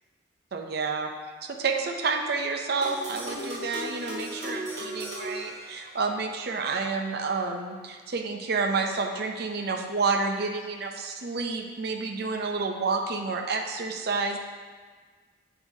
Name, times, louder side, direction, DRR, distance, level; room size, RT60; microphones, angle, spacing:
voice 1, 0.5-1.1 1.4-14.4, right 4 dB, 55° right, 3 dB, 0.6 m, -29 dB
sound 1, 2.8-6.3, right 1 dB, 40° right, 1.6 m, -37 dB
7.8 x 4.7 x 2.7 m, 1.5 s
head